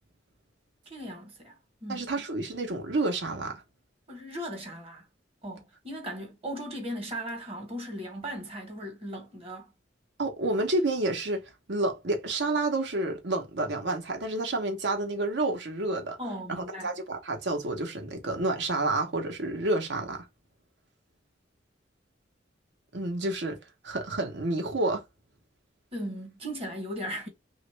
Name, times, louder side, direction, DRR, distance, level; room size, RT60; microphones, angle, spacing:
voice 1, 0.9-2.0 4.1-5.1 5.4-9.7 16.2-16.9 25.9-27.3, equal, 30° right, 1.1 m, -37 dB
voice 2, 1.9-3.6 10.2-11.4 11.7-16.2 16.5-20.3 22.9-23.6 23.8-25.0, right 2 dB, 65° right, 0.9 m, -29 dB
3.0 x 2.5 x 3.2 m
head